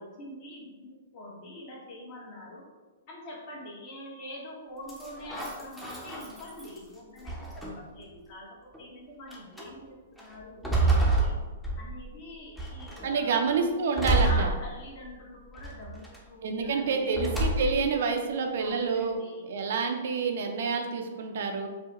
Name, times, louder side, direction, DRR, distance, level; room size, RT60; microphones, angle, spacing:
voice 1, 0.0-2.6 3.1-11.3 11.8-13.4 14.2-17.1 18.6-19.4, left 1 dB, 45° left, -3 dB, 1.1 m, -44 dB
sound 1, 4.9-6.8 7.3-8.0 8.7-8.8 9.3-9.7 10.2-12.1 12.6-13.1 14.0-15.1 15.6-16.2 17.1-18.0, right 2 dB, 5° left, 0.7 m, -28 dB
voice 2, 13.0-14.5 16.4-19.2 19.5-21.7, right 5 dB, 65° right, 4 dB, 0.5 m, -28 dB
4.6 x 2.1 x 2.9 m, 1.3 s
hypercardioid pair, 125°, 0 cm